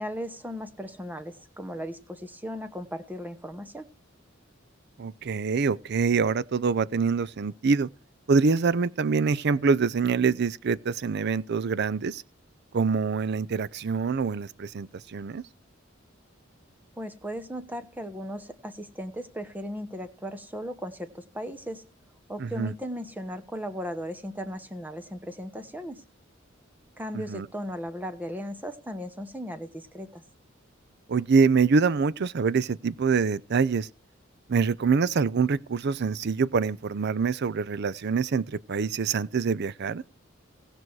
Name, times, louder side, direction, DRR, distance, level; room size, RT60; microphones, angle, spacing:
voice 1, 0.0-3.9 17.0-21.8 22.3-26.0 27.0-30.2, equal, 10° right, 1.1 m, -37 dB
voice 2, 5.0-7.9 8.3-12.2 12.7-15.4 22.4-22.7 27.3-27.5 31.1-33.9 34.5-40.0, right 5 dB, 55° right, 0.5 m, -25 dB
18.0 x 6.1 x 4.7 m
head